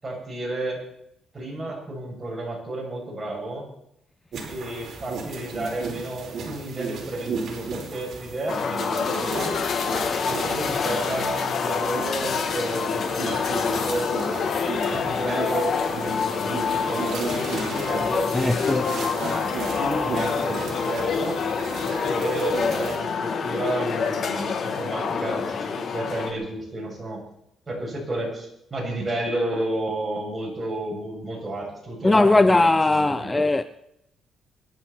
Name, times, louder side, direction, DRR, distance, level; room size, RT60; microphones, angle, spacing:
voice 1, 0.0-0.8 1.3-3.7 4.5-9.5 10.2-14.1 15.0-21.4 21.8-27.2 27.7-33.4, right 1 dB, 30° right, 7.6 m, -31 dB
sound 1, 4.3-23.0, right 4 dB, 60° right, 4.7 m, -35 dB
sound 2, 8.5-26.3, left 5 dB, 60° left, 2.9 m, -26 dB
voice 2, 18.3-18.8 32.0-33.6, left 2 dB, 20° left, 0.6 m, -19 dB
24.5 x 11.5 x 4.4 m
cardioid pair, 90°, 0 cm